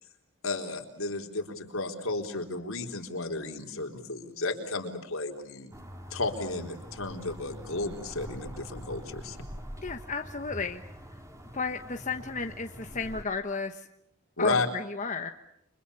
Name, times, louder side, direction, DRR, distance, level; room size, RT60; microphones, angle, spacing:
voice 1, 0.4-5.7 6.1-9.4 14.4-14.7, left 3 dB, 75° left, 3 dB, 4.0 m, -33 dB
sound 1, 5.7-13.2, equal, 15° right, 3.2 m, -44 dB
voice 2, 9.8-10.8 11.5-13.9 14.4-15.3, left 4 dB, 35° left, 6 dB, 1.2 m, -33 dB
29.5 x 25.5 x 6.9 m, 0.76 s
head